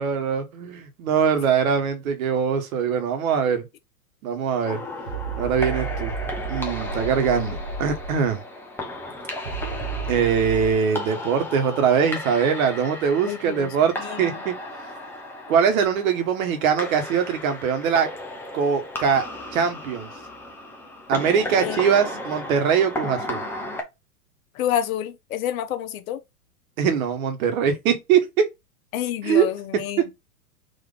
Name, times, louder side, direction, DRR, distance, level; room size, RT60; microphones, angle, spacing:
voice 1, 0.0-3.6 4.2-4.8 5.4-6.1 6.5-8.4 10.1-14.5 15.5-18.1 18.5-19.3 19.5-20.1 21.1-23.4 26.8-28.4 29.2-29.5, right 7 dB, 60° right, 1.5 m, -22 dB
sound 1, 4.6-23.8, left 1 dB, 5° left, 0.7 m, -35 dB
sound 2, 5.1-8.3 9.4-10.7, right 5 dB, 85° right, 1.3 m, -32 dB
voice 2, 13.3-13.7 14.0-14.3 21.6-21.8 24.6-26.2 28.9-30.1, left 10 dB, 60° left, 0.9 m, -28 dB
4.0 x 2.9 x 3.7 m
hypercardioid pair, 115°, 48 cm